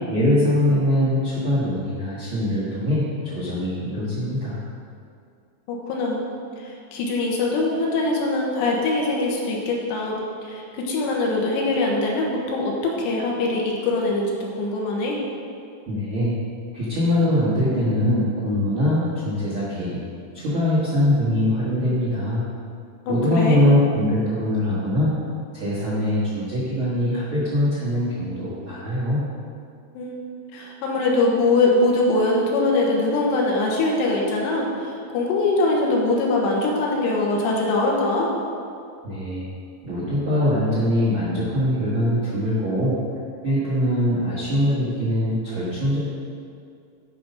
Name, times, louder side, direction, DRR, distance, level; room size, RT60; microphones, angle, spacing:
voice 1, 0.1-4.6 15.9-16.3 16.7-20.0 20.3-22.4 23.1-25.1 25.5-29.2 39.0-39.5 39.8-43.0 43.4-46.0, left 1 dB, 85° right, -9 dB, 1.1 m, -22 dB
voice 2, 5.7-6.3 6.6-15.2 23.1-23.6 29.9-30.2 30.5-38.3, left 2 dB, 75° left, -2 dB, 3.2 m, -22 dB
11.5 x 5.5 x 5.2 m, 2.4 s
omnidirectional pair, 5.4 m